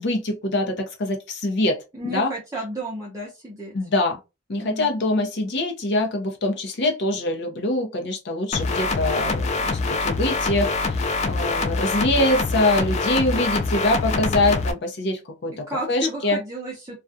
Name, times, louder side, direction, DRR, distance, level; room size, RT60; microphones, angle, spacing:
voice 1, 0.0-2.3 3.7-4.2 4.5-16.4, left 2 dB, 60° left, 0.7 m, -24 dB
voice 2, 1.9-3.7 4.6-4.9 15.7-17.0, right 1 dB, 15° right, 0.6 m, -32 dB
sound 1, 8.5-14.7, left 3 dB, 35° left, 0.3 m, -24 dB
2.4 x 2.2 x 2.6 m
head